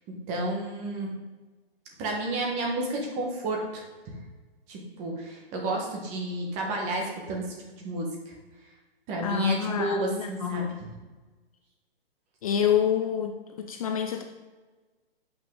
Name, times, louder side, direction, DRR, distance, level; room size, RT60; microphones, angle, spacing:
voice 1, 0.1-1.1 2.0-4.1 4.7-7.5 7.8-8.3 9.1-10.6, right 1 dB, 20° right, 0 dB, 1.3 m, -31 dB
voice 2, 9.2-10.8 12.4-14.2, left 8 dB, 35° left, 5 dB, 0.5 m, -27 dB
7.4 x 5.8 x 3.8 m, 1.3 s
hypercardioid pair, 150°, 30 cm